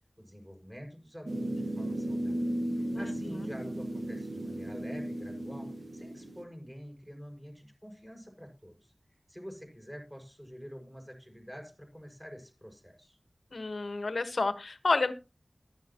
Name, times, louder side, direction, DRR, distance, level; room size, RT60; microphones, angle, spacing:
voice 1, 0.2-8.9 9.3-13.2, equal, 5° right, 2 dB, 6.6 m, -47 dB
sound 1, 1.3-6.4, right 1 dB, 65° right, 1.5 m, -35 dB
voice 2, 2.9-3.3 13.5-15.1, left 3 dB, 80° left, 11 dB, 1.4 m, -30 dB
14.0 x 12.0 x 3.0 m, 0.29 s
wide cardioid pair, 60°, 0 cm